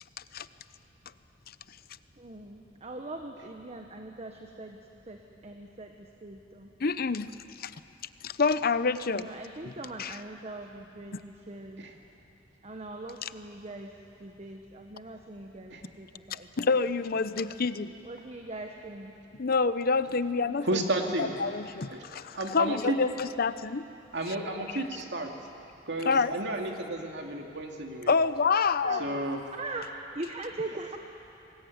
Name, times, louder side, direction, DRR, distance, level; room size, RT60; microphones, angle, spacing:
voice 1, 2.2-4.8 5.1-5.2 5.4-6.7 9.1-11.8 12.6-13.9 14.2-16.7 18.0-19.1 28.8-29.0 29.5-29.9 30.1-31.0, right 2 dB, 35° right, 3 dB, 1.2 m, -41 dB
voice 2, 6.8-7.3 7.6-7.7 8.2-9.2 9.6-9.7 10.0-10.2 16.3-17.9 19.4-20.8 21.2-23.8 24.7-24.8 26.0-26.4 28.1-29.2, left 4 dB, 50° left, 14 dB, 0.7 m, -27 dB
voice 3, 20.6-21.3 21.9-22.0 22.3-23.0 24.1-25.3 25.9-28.1 29.0-29.4, right 1 dB, 65° right, 2 dB, 2.6 m, -32 dB
24.5 x 20.5 x 9.3 m, 2.8 s
head